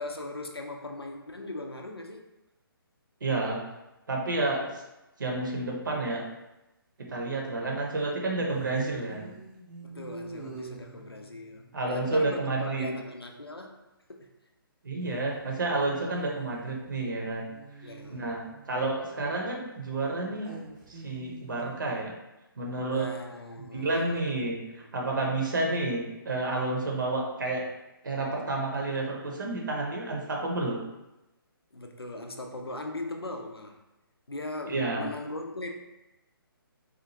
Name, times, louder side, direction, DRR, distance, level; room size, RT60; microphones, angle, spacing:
voice 1, 0.0-2.2 9.8-13.8 14.1-14.3 17.8-18.3 22.9-24.2 24.7-24.9 31.7-33.8 34.3-35.8, left 2 dB, 80° left, 3 dB, 0.5 m, -39 dB
voice 2, 3.2-3.6 4.1-4.8 5.2-6.2 7.1-9.3 11.7-12.9 14.8-17.5 17.8-20.5 20.9-22.1 22.6-23.1 23.6-27.7 28.0-30.8 34.7-35.1, right 2 dB, 55° right, -1 dB, 0.9 m, -30 dB
sound 1, 8.5-12.8 15.0-19.6 20.4-22.0, right 3 dB, 20° right, 0.5 m, -48 dB
4.1 x 2.5 x 2.8 m, 0.98 s
figure-of-eight pair, 135°, 13 cm